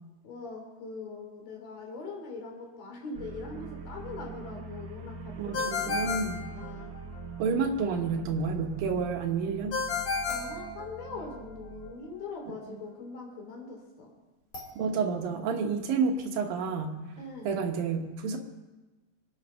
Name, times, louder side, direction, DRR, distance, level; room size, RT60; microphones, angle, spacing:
voice 1, 0.2-7.0 10.3-14.1 17.2-17.5, left 3 dB, 80° left, 0 dB, 5.1 m, -42 dB
sound 1, 3.1-11.9, right 4 dB, 55° right, 2.3 m, -43 dB
voice 2, 5.4-6.4 7.4-9.8 12.7-12.8 14.8-17.0 17.4-18.4, right 5 dB, 75° right, 4 dB, 3.1 m, -30 dB
Ringtone, 5.5-7.2 9.7-11.4, left 5 dB, 50° left, 1.9 m, -32 dB
sound 2, 10.3-11.7 14.5-15.1 15.7-15.8, right 4 dB, 25° left, 2.8 m, -45 dB
26.0 x 9.0 x 5.7 m, 1.2 s
omnidirectional pair, 4.2 m